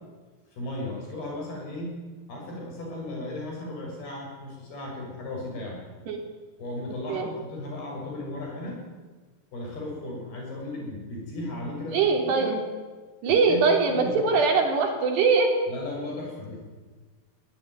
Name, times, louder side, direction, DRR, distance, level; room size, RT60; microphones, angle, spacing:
voice 1, 0.5-2.0 2.3-5.8 6.6-8.8 9.5-12.4 13.5-14.3 15.7-16.6, left 1 dB, 65° left, -1 dB, 9.3 m, -36 dB
voice 2, 11.9-12.6 13.2-15.5, right 4 dB, 80° right, 3 dB, 5.7 m, -22 dB
23.5 x 17.0 x 9.6 m, 1.4 s
omnidirectional pair, 4.7 m